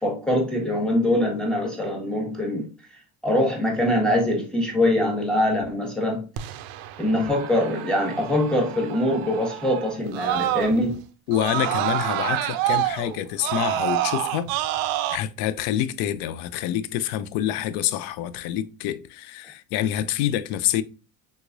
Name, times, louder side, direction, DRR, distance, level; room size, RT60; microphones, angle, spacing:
voice 1, 0.0-2.7 3.2-6.2 7.0-11.0 12.2-12.9, left 1 dB, ahead, 1.2 m, -23 dB
Screaming, 6.4-11.0 11.3-15.2, right 13 dB, 55° right, 0.5 m, -28 dB
voice 2, 11.3-14.5 15.1-20.8, left 12 dB, 60° left, 0.5 m, -27 dB
3.6 x 3.0 x 2.5 m
supercardioid pair, 105°, 42 cm